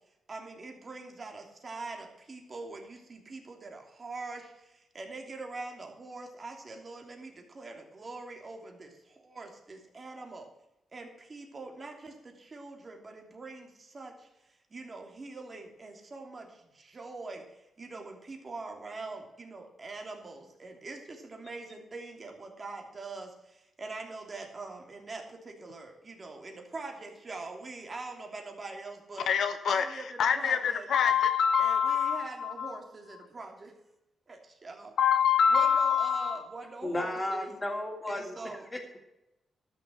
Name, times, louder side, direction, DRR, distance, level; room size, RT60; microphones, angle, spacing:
voice 1, 0.3-4.4 4.9-7.3 7.5-8.9 9.3-10.4 10.9-12.1 12.5-13.7 13.9-14.1 14.7-16.4 16.9-17.4 17.8-23.3 23.8-29.3 29.7-30.9 31.6-33.7 34.6-34.9 35.5-37.5 38.1-38.6, right 3 dB, 35° right, 3.0 m, -43 dB
voice 2, 29.3-29.8 30.2-32.8 35.0-36.4, left 7 dB, 75° left, 1.0 m, -25 dB
voice 3, 36.8-38.4 38.7-39.0, left 1 dB, 20° left, 2.8 m, -33 dB
13.0 x 6.8 x 7.5 m
cardioid pair, 85°, 0 cm